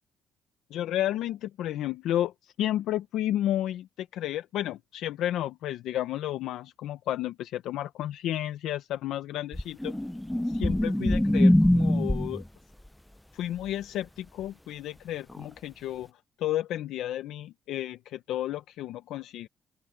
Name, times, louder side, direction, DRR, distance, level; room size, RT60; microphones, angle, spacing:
voice 1, 0.7-9.9 10.5-12.4 13.3-16.1 16.4-19.5, left 12 dB, 85° left, 0.8 m, -32 dB
Stomach Growl, 9.5-12.5 15.3-15.4, left 1 dB, 5° left, 0.5 m, -23 dB
open air
cardioid pair, 90°, 0 cm